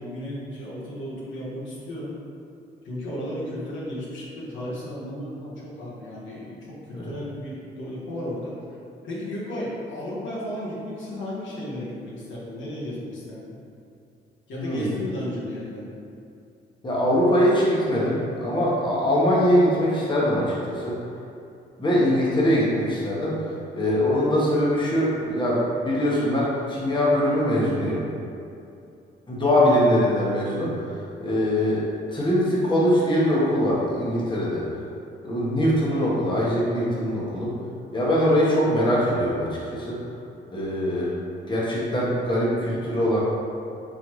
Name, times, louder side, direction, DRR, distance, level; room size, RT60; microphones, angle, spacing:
voice 1, 0.0-2.1 2.8-8.6 9.0-13.6 14.5-15.9, equal, 70° left, -7 dB, 1.3 m, -34 dB
voice 2, 14.5-14.9 16.8-21.0 21.8-28.0 29.3-31.8 32.1-34.6 35.2-37.5 37.9-40.0 40.5-41.1 41.5-43.2, equal, 25° left, -6 dB, 1.1 m, -22 dB
4.2 x 4.0 x 3.1 m, 2.6 s
cardioid pair, 90°, 20 cm